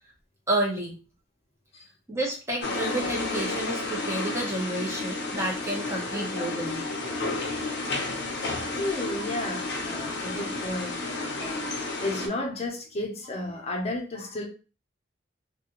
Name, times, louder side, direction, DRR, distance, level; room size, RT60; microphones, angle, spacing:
voice 1, 0.5-1.0 2.1-6.8, right 1 dB, 15° right, -2 dB, 0.9 m, -30 dB
sound 1, 2.6-12.3, left 2 dB, 65° left, 0.7 m, -31 dB
voice 2, 8.8-14.5, left 1 dB, 35° left, 0 dB, 0.7 m, -33 dB
2.4 x 2.2 x 2.9 m, 0.34 s
head